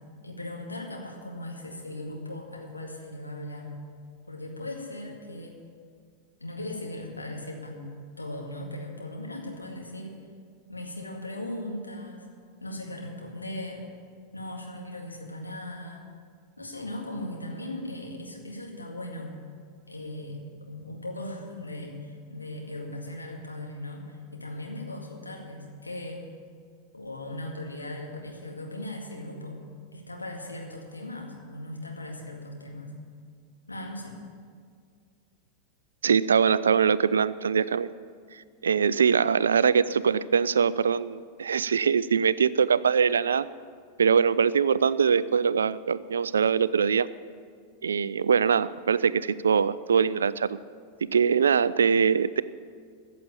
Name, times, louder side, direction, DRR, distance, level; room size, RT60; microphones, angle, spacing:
voice 1, 0.2-3.8 4.3-5.6 6.4-7.9 8.2-10.2 10.7-12.3 12.6-13.9 14.3-16.0 16.6-19.4 19.9-20.4 20.7-26.3 26.9-29.6 29.9-33.0 33.7-34.2, left 1 dB, 80° left, 0 dB, 2.1 m, -38 dB
voice 2, 36.0-37.9 38.6-43.5 44.0-47.1 47.8-50.6 51.1-52.4, right 6 dB, 70° right, 18 dB, 0.3 m, -23 dB
14.5 x 7.5 x 8.6 m, 2.1 s
figure-of-eight pair, 90°, 0 cm